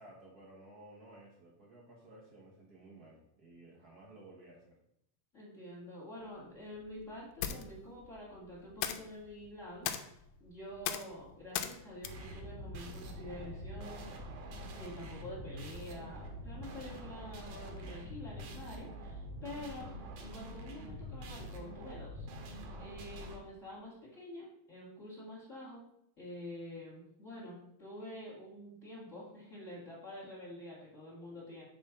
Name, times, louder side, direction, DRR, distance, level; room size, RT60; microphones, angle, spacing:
voice 1, 0.0-4.8, right 2 dB, 60° right, -3 dB, 1.0 m, -55 dB
voice 2, 5.3-9.9 10.4-14.1 14.7-19.9 20.2-22.3 22.8-25.8 26.2-31.6, left 1 dB, 25° left, -5 dB, 2.5 m, -47 dB
sound 1, 6.2-13.5, left 10 dB, 90° left, 2.1 m, -42 dB
sound 2, 12.0-23.4, equal, 80° right, 2.6 m, -45 dB
7.4 x 3.6 x 6.0 m, 0.76 s
omnidirectional pair, 3.5 m